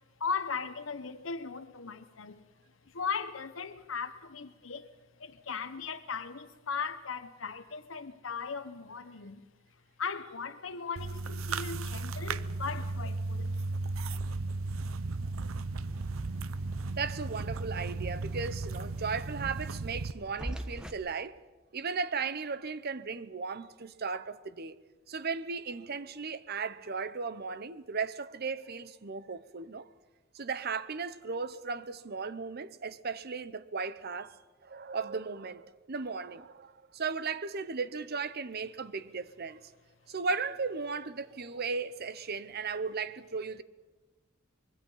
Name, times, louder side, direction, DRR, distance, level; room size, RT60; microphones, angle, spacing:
voice 1, 0.2-2.4 2.8-4.9 5.2-9.5 10.0-13.5, left 5 dB, 70° left, 1.0 m, -38 dB
sound 1, 11.0-20.1, right 3 dB, 85° right, 0.7 m, -35 dB
sound 2, 15.9-20.9, right 1 dB, 5° right, 1.4 m, -45 dB
voice 2, 17.0-21.4 21.7-24.8 25.1-29.9 30.3-34.4 34.6-39.7 40.1-43.6, right 5 dB, 50° right, 0.8 m, -36 dB
25.0 x 22.0 x 5.6 m
head